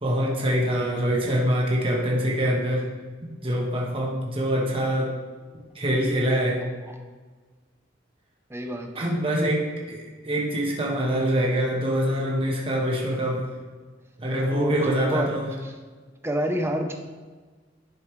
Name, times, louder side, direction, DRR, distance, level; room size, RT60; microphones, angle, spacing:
voice 1, 0.0-2.9 3.4-5.1 5.7-6.6 8.9-13.4 14.2-15.5, equal, 30° right, -2 dB, 1.3 m, -24 dB
voice 2, 8.5-9.1 14.5-15.3 16.2-16.9, right 1 dB, 15° right, 3 dB, 0.8 m, -27 dB
10.5 x 5.4 x 3.2 m, 1.4 s
head